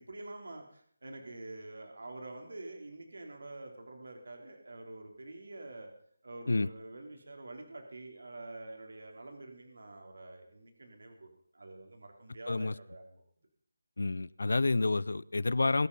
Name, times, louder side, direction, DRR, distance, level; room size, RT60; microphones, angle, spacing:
voice 1, 0.0-5.9 6.2-11.3 11.5-13.2, right 2 dB, 65° right, 3 dB, 3.5 m, -47 dB
voice 2, 14.0-15.9, left 3 dB, 65° left, 21 dB, 0.6 m, -29 dB
21.0 x 9.3 x 5.5 m, 0.63 s
figure-of-eight pair, 180°, 0 cm